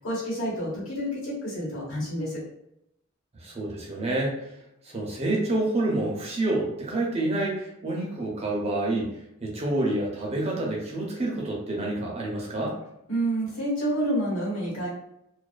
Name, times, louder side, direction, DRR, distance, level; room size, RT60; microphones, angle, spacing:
voice 1, 0.0-2.4 13.1-14.9, right 1 dB, 65° left, -5 dB, 1.2 m, -28 dB
voice 2, 3.4-4.5 4.8-9.1 9.4-12.8, right 2 dB, 30° right, -2 dB, 0.5 m, -28 dB
2.4 x 2.3 x 2.3 m, 0.81 s
head